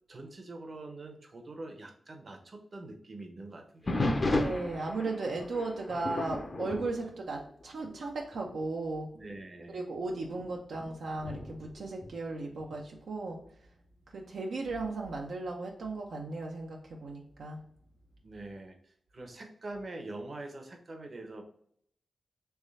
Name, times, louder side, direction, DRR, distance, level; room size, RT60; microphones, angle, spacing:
voice 1, 0.1-4.1 7.0-7.1 9.1-9.8 18.2-21.4, right 2 dB, 50° right, 4 dB, 0.8 m, -44 dB
sound 1, 3.9-8.0 8.3-8.7 9.3-9.4 10.1-12.8 14.7-15.2, left 2 dB, 40° left, 0.6 m, -35 dB
voice 2, 4.4-9.1 9.7-13.4 14.1-17.6, right 3 dB, 80° right, 0 dB, 0.6 m, -36 dB
3.5 x 3.2 x 4.0 m, 0.66 s
cardioid pair, 60°, 0 cm